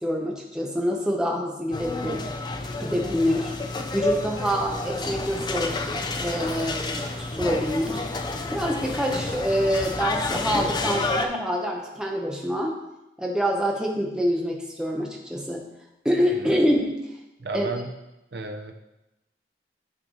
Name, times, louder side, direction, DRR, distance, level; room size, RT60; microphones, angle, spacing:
voice 1, 0.0-2.3 2.8-3.5 3.9-5.8 6.2-8.1 8.5-12.8 13.2-15.7 16.0-17.0 17.5-17.7, equal, 5° right, -1 dB, 0.8 m, -26 dB
sound 1, 1.7-11.3, left 2 dB, 25° left, 0.4 m, -30 dB
voice 2, 17.4-17.9 18.3-18.7, right 3 dB, 65° right, 5 dB, 0.7 m, -33 dB
9.2 x 4.5 x 3.9 m, 0.95 s
head